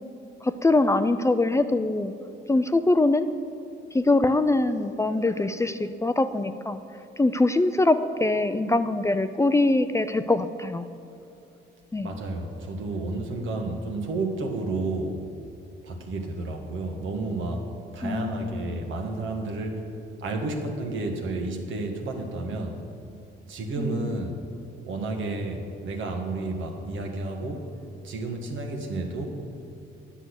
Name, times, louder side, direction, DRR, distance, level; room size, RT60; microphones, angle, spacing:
voice 1, 0.4-2.1 2.5-3.3 3.9-6.8 7.2-10.9 11.9-12.1 18.0-18.8 23.8-24.2, left 2 dB, 15° left, 10 dB, 0.4 m, -23 dB
voice 2, 12.0-15.2 15.8-17.6 17.9-19.8 20.2-22.8 23.5-24.4 24.8-27.6 28.0-29.4, right 2 dB, 75° right, 3 dB, 1.6 m, -31 dB
10.0 x 6.3 x 8.0 m, 2.7 s
cardioid pair, 90°, 20 cm